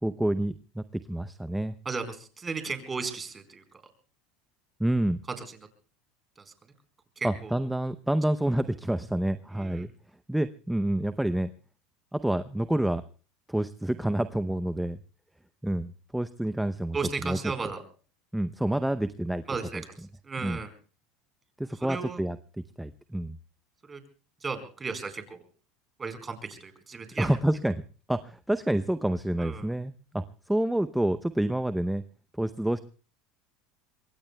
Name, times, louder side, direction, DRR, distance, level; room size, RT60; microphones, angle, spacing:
voice 1, 0.0-1.7 4.8-5.2 7.2-9.9 10.3-11.5 12.1-13.0 13.5-15.0 15.6-17.4 18.3-19.4 19.7-19.8 20.4-20.6 21.6-22.4 22.8-23.4 27.2-27.8 28.1-32.0 32.4-32.8, right 1 dB, 5° right, 12 dB, 0.7 m, -28 dB
voice 2, 1.8-3.6 5.5-5.6 6.4-6.5 7.2-7.5 9.5-9.8 16.9-17.8 19.5-20.0 20.2-20.7 21.8-22.2 23.9-24.0 24.4-25.4 26.0-27.3 29.4-29.7, right 4 dB, 25° right, 8 dB, 4.4 m, -35 dB
25.5 x 22.5 x 2.3 m, 0.39 s
supercardioid pair, 100°, 0 cm